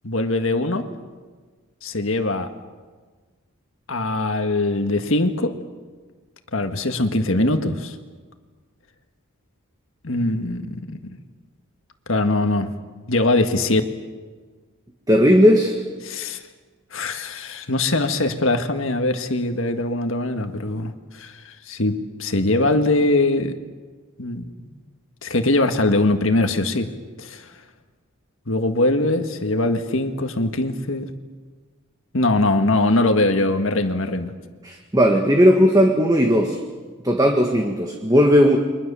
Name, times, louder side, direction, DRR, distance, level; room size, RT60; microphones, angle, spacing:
voice 1, 0.0-0.9 1.8-2.5 3.9-5.5 6.5-8.0 10.0-11.0 12.1-12.7 13.1-13.8 16.0-16.4 16.9-21.4 21.7-23.5 24.2-24.7 25.2-26.9 27.2-27.5 28.5-31.1 32.1-34.3, left 2 dB, 60° left, 6 dB, 1.8 m, -22 dB
voice 2, 15.1-15.8 34.6-36.6 37.0-38.6, equal, 15° right, 2 dB, 1.8 m, -16 dB
30.0 x 24.0 x 7.0 m, 1.4 s
head